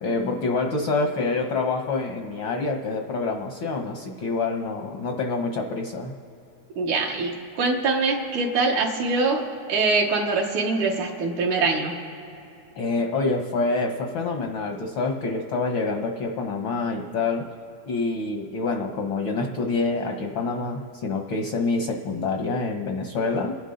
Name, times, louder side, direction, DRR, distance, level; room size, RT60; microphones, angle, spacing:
voice 1, 0.0-6.1 12.8-17.5 17.9-23.5, left 3 dB, 70° left, 3 dB, 1.2 m, -26 dB
voice 2, 6.8-9.4 9.7-11.9, right 3 dB, 75° right, -1 dB, 2.8 m, -23 dB
28.5 x 11.0 x 3.9 m, 2.9 s
omnidirectional pair, 3.5 m